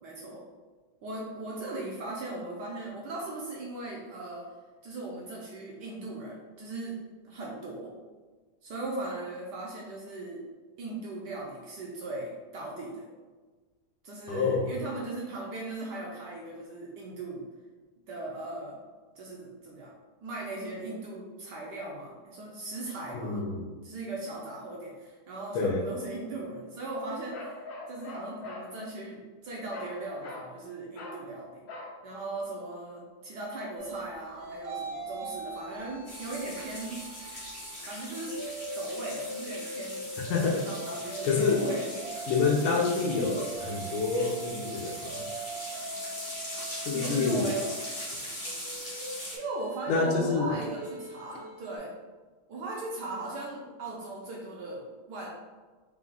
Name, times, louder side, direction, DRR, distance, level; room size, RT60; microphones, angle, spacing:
voice 1, 0.0-0.4 1.0-4.4 4.8-7.0 7.2-7.9 8.6-10.4 10.8-13.1 14.0-17.4 18.1-18.8 19.2-19.9 20.2-23.4 23.8-31.6 32.0-37.0 37.8-38.4 38.7-40.0 40.5-42.1 46.9-47.7 49.3-51.9 52.5-55.3, right 2 dB, 70° right, -2 dB, 1.0 m, -38 dB
voice 2, 14.3-14.8 23.1-23.7 25.5-25.8 40.3-40.7 41.2-41.6 42.3-45.2 46.8-47.5 49.9-50.6, left 4 dB, 85° left, 0 dB, 1.6 m, -27 dB
Bark, 27.3-28.7 29.7-30.0 30.2-30.5 30.9-31.2 31.7-32.0, left 2 dB, 60° left, 1.0 m, -42 dB
sound 1, 33.8-37.8 38.2-51.8, right 3 dB, 90° right, 1.5 m, -41 dB
sound 2, 36.0-49.4, equal, 30° left, 0.6 m, -40 dB
4.5 x 2.4 x 3.8 m, 1.3 s
omnidirectional pair, 2.3 m